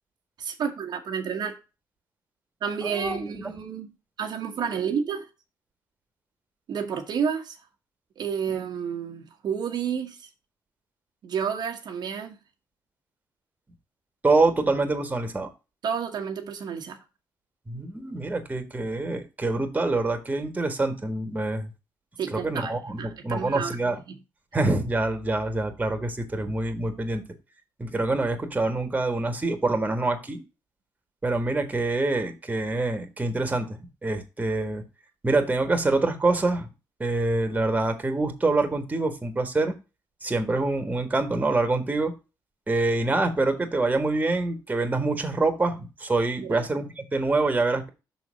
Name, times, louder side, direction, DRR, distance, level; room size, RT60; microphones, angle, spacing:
voice 1, 0.4-1.5 2.6-3.9 4.2-5.2 6.7-7.6 8.2-10.3 11.2-12.4 15.8-17.0 22.2-22.7 23.0-23.8 46.4-46.7, right 7 dB, 65° right, 1.3 m, -30 dB
voice 2, 2.8-3.5 14.2-15.5 17.7-21.7 22.3-24.0 24.5-27.2 27.8-30.4 31.2-34.8 35.2-36.7 37.0-39.7 40.2-42.1 42.7-47.9, right 2 dB, 20° right, 1.7 m, -26 dB
6.3 x 4.1 x 6.3 m
cardioid pair, 95°, 8 cm